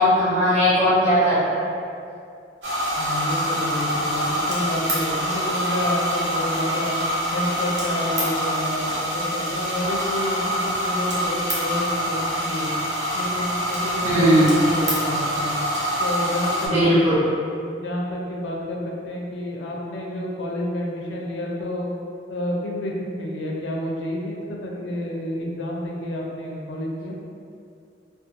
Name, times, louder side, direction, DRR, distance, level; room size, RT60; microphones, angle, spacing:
voice 1, 0.0-1.7 14.0-14.6 16.6-17.2, equal, 40° right, -13 dB, 1.1 m, -18 dB
sound 1, 2.6-16.7, equal, 65° right, 0.7 m, -25 dB
voice 2, 3.0-7.0 7.3-12.8 13.1-15.5 16.0-17.0 17.7-21.9 22.3-27.2, left 1 dB, 75° left, -2 dB, 0.4 m, -29 dB
2.5 x 2.3 x 2.7 m, 2.4 s
head